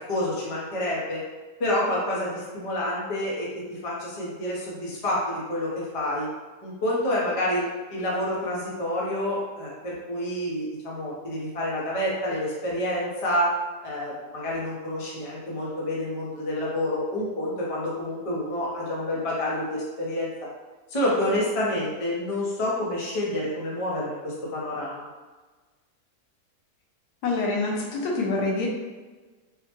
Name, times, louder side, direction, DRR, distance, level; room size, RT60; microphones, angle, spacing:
voice 1, 0.1-1.2 1.6-6.3 6.6-13.5 13.8-20.3 20.9-25.1, left 1 dB, 35° left, -5 dB, 0.5 m, -28 dB
voice 2, 27.2-28.7, left 3 dB, 80° left, -1 dB, 1.2 m, -26 dB
3.7 x 2.2 x 2.9 m, 1.3 s
omnidirectional pair, 1.7 m